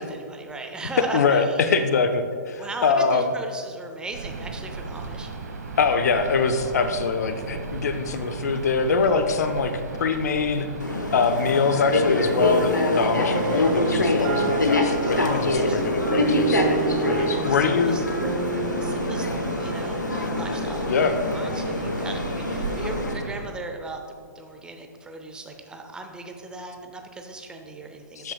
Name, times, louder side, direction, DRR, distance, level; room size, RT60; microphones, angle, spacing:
voice 1, 0.0-1.9 2.6-5.3 15.3-15.8 17.2-18.0 18.8-21.0 21.3-24.0 24.3-28.3, right 2 dB, 10° right, 4 dB, 0.7 m, -37 dB
voice 2, 1.1-3.2 5.8-9.7 10.0-10.7 11.1-16.7 17.1-18.0 20.9-21.1 28.2-28.3, left 5 dB, 60° left, 9 dB, 0.6 m, -23 dB
sound 1, 4.1-23.4, right 4 dB, 65° right, 1.2 m, -36 dB
sound 2, 10.8-23.1, left 2 dB, 90° left, 1.0 m, -25 dB
sound 3, 12.4-20.9, right 4 dB, 40° right, 0.9 m, -30 dB
12.5 x 7.8 x 2.3 m, 2.1 s
figure-of-eight pair, 120°, 10 cm